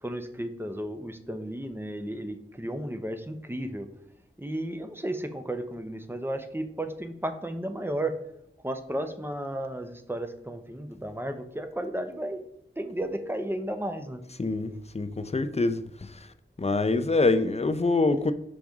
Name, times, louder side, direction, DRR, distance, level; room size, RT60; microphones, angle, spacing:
voice 1, 0.0-3.9 4.4-8.3 8.6-12.4 12.8-14.2, right 1 dB, 10° right, 0.7 m, -33 dB
voice 2, 14.4-16.1 16.6-18.3, left 3 dB, 30° left, 0.5 m, -25 dB
6.0 x 5.1 x 3.5 m
wide cardioid pair, 70°, 20 cm